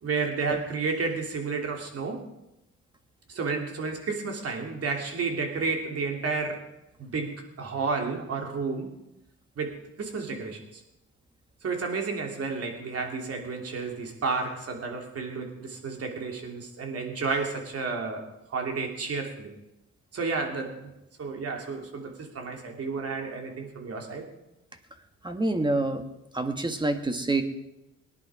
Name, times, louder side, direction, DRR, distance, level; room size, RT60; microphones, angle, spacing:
voice 1, 0.0-2.2 3.3-6.6 7.0-8.9 9.6-10.8 11.6-19.5 20.1-20.9 21.2-24.3, right 4 dB, 50° right, 2 dB, 2.8 m, -31 dB
voice 2, 25.2-26.0 26.3-27.4, right 2 dB, 15° right, 7 dB, 1.5 m, -27 dB
19.0 x 10.5 x 4.9 m, 0.91 s
cardioid pair, 90°, 30 cm